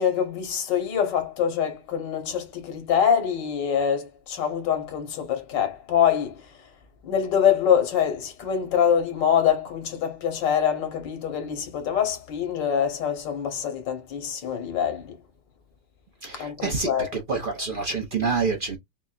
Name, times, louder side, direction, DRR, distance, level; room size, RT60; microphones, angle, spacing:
voice 1, 0.0-6.4 7.1-15.2 16.3-17.2, left 8 dB, 90° left, 1.8 m, -24 dB
voice 2, 16.2-18.8, right 4 dB, 60° right, 0.5 m, -27 dB
5.6 x 2.3 x 2.5 m
omnidirectional pair, 1.9 m